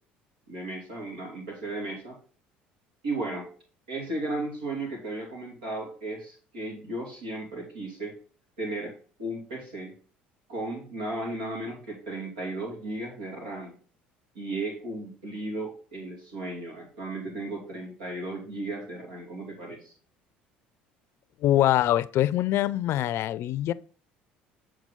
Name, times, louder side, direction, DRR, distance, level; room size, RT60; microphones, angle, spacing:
voice 1, 0.5-2.2 3.0-3.5 3.9-8.2 8.6-9.9 10.5-13.7 14.3-19.9, right 2 dB, 90° right, 2.8 m, -35 dB
voice 2, 21.4-23.7, left 13 dB, 60° left, 0.5 m, -24 dB
7.6 x 4.8 x 3.8 m
hypercardioid pair, 70°, 5 cm